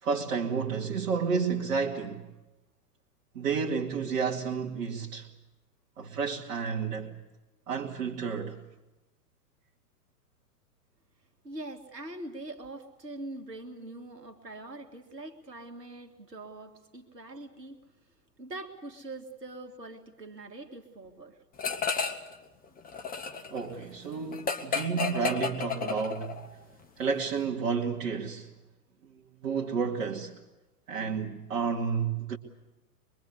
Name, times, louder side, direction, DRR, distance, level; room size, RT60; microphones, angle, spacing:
voice 1, 0.0-2.2 3.3-5.3 6.0-7.2 7.7-8.6 23.5-26.4 27.0-28.5 29.4-30.4 30.9-32.4, right 5 dB, 55° right, 2.4 m, -31 dB
voice 2, 11.4-17.8 18.4-21.4, right 2 dB, 90° right, 2.2 m, -43 dB
sound 1, 21.6-22.3 22.6-26.5, left 6 dB, 20° left, 1.8 m, -32 dB
24.0 x 23.0 x 8.2 m
figure-of-eight pair, 110°, 47 cm